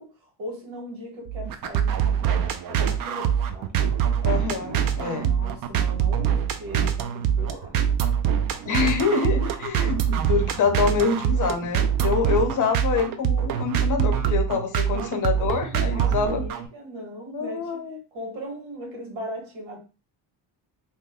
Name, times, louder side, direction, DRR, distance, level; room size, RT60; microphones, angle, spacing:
voice 1, 0.0-3.8 5.1-7.8 15.9-17.8 18.1-19.8, equal, 85° right, 1.6 m, -38 dB
sound 1, 1.3-16.7, right 8 dB, 50° right, 0.5 m, -24 dB
voice 2, 4.2-5.4 8.7-16.5 17.3-18.0, left 5 dB, 40° left, 0.7 m, -26 dB
2.8 x 2.2 x 3.5 m
cardioid pair, 115°, 46 cm